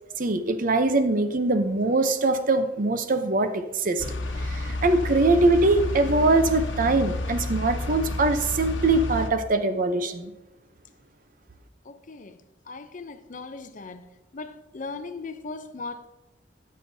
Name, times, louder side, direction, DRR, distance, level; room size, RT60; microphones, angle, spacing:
voice 1, 0.2-4.0 4.4-10.3, right 2 dB, 45° right, 0.7 m, -22 dB
sound 1, 4.0-9.3, left 2 dB, 80° left, 1.0 m, -30 dB
voice 2, 11.9-12.3 12.7-14.0 14.3-16.1, left 3 dB, 45° left, 0.6 m, -38 dB
13.0 x 8.4 x 2.8 m
head